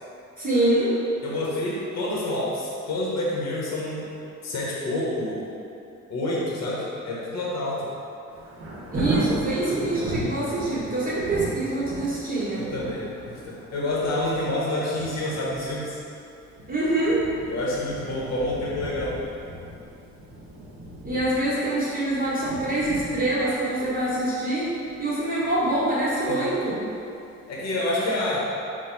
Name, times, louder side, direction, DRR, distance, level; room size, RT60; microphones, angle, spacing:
voice 1, 0.4-0.9 8.9-12.6 16.7-17.2 21.0-24.7 25.0-26.9, right 1 dB, 30° right, -9 dB, 1.4 m, -25 dB
voice 2, 1.2-4.0 4.4-5.4 6.1-7.8 12.6-13.4 13.7-16.0 17.5-19.2 26.3-26.5 27.5-28.4, left 1 dB, 60° left, -6 dB, 1.0 m, -28 dB
Thunder, 8.3-27.1 27.5-27.6, right 1 dB, 45° right, 1.0 m, -36 dB
4.1 x 2.3 x 4.4 m, 2.7 s
cardioid pair, 90°, 30 cm